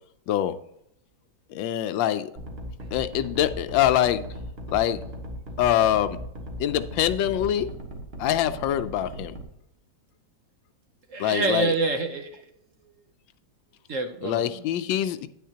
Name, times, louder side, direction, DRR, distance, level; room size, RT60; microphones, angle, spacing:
voice 1, 1.5-2.3 2.9-4.2 4.7-5.0 5.6-6.2 6.6-7.7 8.2-9.3 11.2-11.7 14.2-15.3, left 11 dB, 85° left, 12 dB, 1.3 m, -24 dB
sound 1, 2.4-9.4, equal, 35° right, 1.3 m, -37 dB
voice 2, 11.1-12.4 13.9-14.6, right 3 dB, 60° right, 5 dB, 0.8 m, -27 dB
9.4 x 9.2 x 2.8 m, 0.76 s
omnidirectional pair, 2.0 m